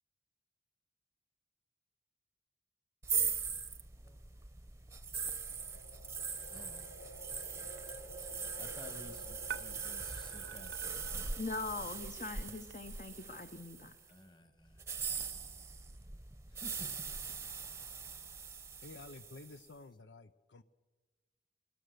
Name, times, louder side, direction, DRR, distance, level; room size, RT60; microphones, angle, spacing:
sound 1, 3.0-14.0 14.7-19.6, right 6 dB, 15° right, 0.8 m, -41 dB
sound 2, 5.1-13.1, left 1 dB, 70° left, 2.7 m, -54 dB
voice 1, 5.2-5.6 6.5-6.9 7.2-7.6 8.6-11.3 14.1-14.8 15.4-15.5 16.5-16.9 17.7-17.9, equal, 25° left, 1.6 m, -55 dB
sound 3, 7.6-12.8, right 8 dB, 70° right, 0.8 m, -51 dB
voice 2, 11.4-13.9, left 3 dB, 40° left, 0.9 m, -41 dB
voice 3, 18.8-20.6, left 3 dB, 85° left, 0.7 m, -52 dB
22.5 x 20.5 x 6.7 m
head